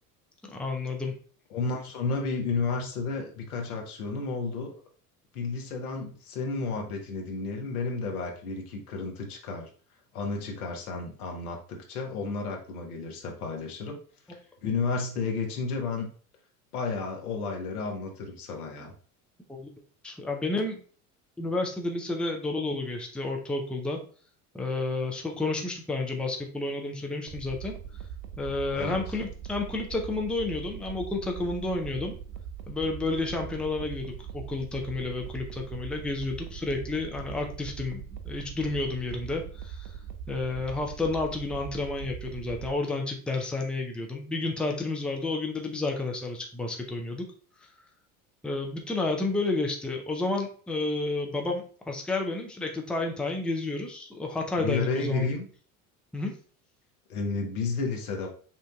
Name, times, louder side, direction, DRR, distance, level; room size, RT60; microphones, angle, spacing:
voice 1, 0.5-1.1 19.5-19.7 20.0-20.8 21.4-24.0 24.5-27.7 28.4-32.1 32.7-39.9 40.3-47.2 48.4-55.3 56.1-56.3, left 3 dB, ahead, 2 dB, 0.6 m, -31 dB
voice 2, 1.5-4.8 5.3-9.7 10.1-14.0 14.6-16.1 16.7-18.9 28.7-29.1 54.6-55.5 57.1-58.3, left 4 dB, 75° left, 2 dB, 1.1 m, -32 dB
sound 1, 27.3-42.7, right 8 dB, 40° right, 0.6 m, -41 dB
5.7 x 2.6 x 2.3 m, 0.42 s
hypercardioid pair, 70°, 45 cm